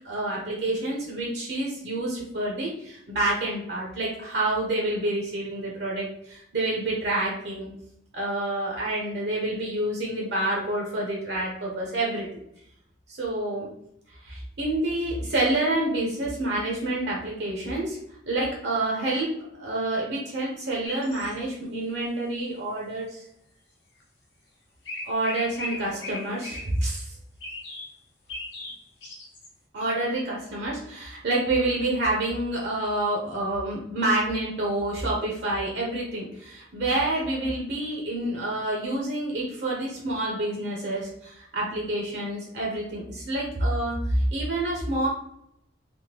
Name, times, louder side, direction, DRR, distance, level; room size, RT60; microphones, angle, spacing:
voice 1, 0.0-7.7 8.1-12.3 13.1-13.7 14.2-18.0 18.3-19.3 19.6-23.2 25.0-27.1 29.7-45.1, right 1 dB, 65° right, -3 dB, 0.8 m, -28 dB
sound 1, 20.8-21.3 24.0-24.1 24.8-26.7 27.4-27.9 28.3-29.5, left 2 dB, 75° left, 0.8 m, -37 dB
3.5 x 2.2 x 2.8 m, 0.77 s
head